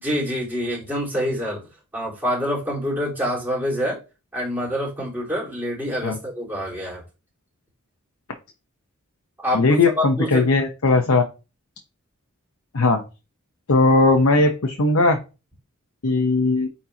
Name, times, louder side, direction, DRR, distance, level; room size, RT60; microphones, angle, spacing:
voice 1, 0.0-1.7 1.9-4.0 4.3-7.0 9.4-10.5, equal, 10° right, -7 dB, 4.0 m, -26 dB
voice 2, 9.5-11.2 12.7-13.0 13.7-15.2 16.0-16.7, left 3 dB, 75° left, 4 dB, 0.9 m, -18 dB
9.0 x 4.3 x 2.8 m, 0.30 s
head